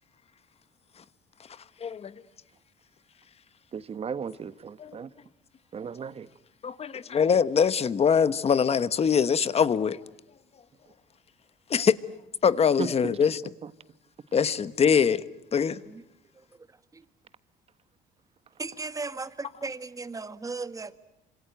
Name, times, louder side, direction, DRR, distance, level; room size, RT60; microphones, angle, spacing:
voice 1, 1.8-2.1 4.8-5.0 6.6-10.0 11.7-12.0 12.4-13.4 14.3-15.2 15.5-15.8, left 7 dB, 35° left, 1.3 m, -23 dB
voice 2, 3.7-5.1 5.7-6.3 12.8-13.1, right 6 dB, 35° right, 1.1 m, -35 dB
voice 3, 18.6-21.0, right 3 dB, 20° right, 1.5 m, -36 dB
28.0 x 26.5 x 8.0 m
cardioid pair, 110°, 17 cm